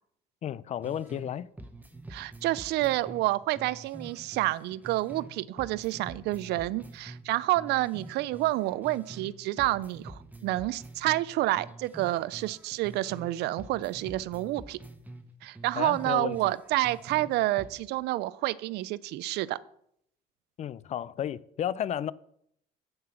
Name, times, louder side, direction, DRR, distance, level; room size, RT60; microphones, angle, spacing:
voice 1, 0.4-1.5 15.8-16.4 20.6-22.1, left 10 dB, 40° left, 0.4 m, -33 dB
sound 1, 0.8-1.3 1.6-5.3 5.6-9.3 9.6-13.3 13.6-17.3 17.6-17.7, right 2 dB, 10° right, 1.0 m, -46 dB
voice 2, 2.1-14.8 15.4-19.6, right 17 dB, 80° right, 0.4 m, -29 dB
7.9 x 7.4 x 5.7 m
cardioid pair, 110°, 17 cm